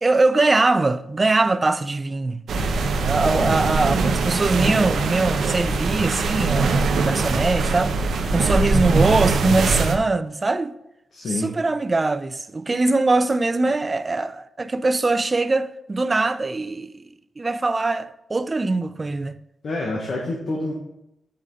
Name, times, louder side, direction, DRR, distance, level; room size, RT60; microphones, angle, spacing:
voice 1, 0.0-2.4 3.0-8.0 8.3-10.7 11.3-17.0 17.4-19.4, right 3 dB, 25° right, 0.3 m, -22 dB
sound 1, 2.5-10.0, right 4 dB, 70° right, 0.8 m, -22 dB
voice 2, 3.2-3.6 11.1-11.5 13.6-13.7 19.6-20.7, left 2 dB, 50° left, 1.2 m, -28 dB
8.4 x 4.9 x 3.7 m
wide cardioid pair, 125°, 0 cm